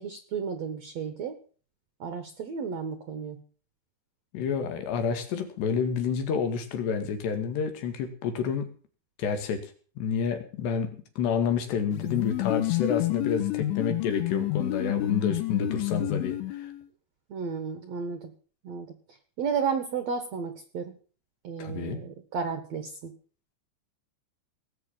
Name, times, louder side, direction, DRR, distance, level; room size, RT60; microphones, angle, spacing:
voice 1, 0.0-1.4 2.0-3.4 17.3-18.3 18.6-18.9 19.4-20.9 21.4-23.1, right 6 dB, 60° right, 9 dB, 1.9 m, -33 dB
voice 2, 4.3-8.7 9.2-9.7 10.0-16.7 21.6-22.0, left 6 dB, 70° left, 8 dB, 4.1 m, -29 dB
sound 1, 11.9-16.8, left 17 dB, 85° left, 3.6 m, -29 dB
19.0 x 8.4 x 7.3 m, 0.42 s
omnidirectional pair, 5.3 m